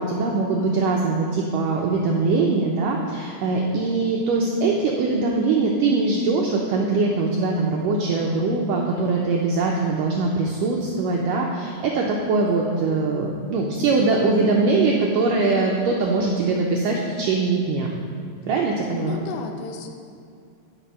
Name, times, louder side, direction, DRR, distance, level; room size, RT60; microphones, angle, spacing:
voice 1, 0.0-17.9 18.5-19.2, right 3 dB, 85° right, -1 dB, 1.9 m, -22 dB
voice 2, 18.9-19.9, left 4 dB, 90° left, 4 dB, 3.1 m, -33 dB
15.0 x 6.0 x 5.6 m, 2.4 s
omnidirectional pair, 4.9 m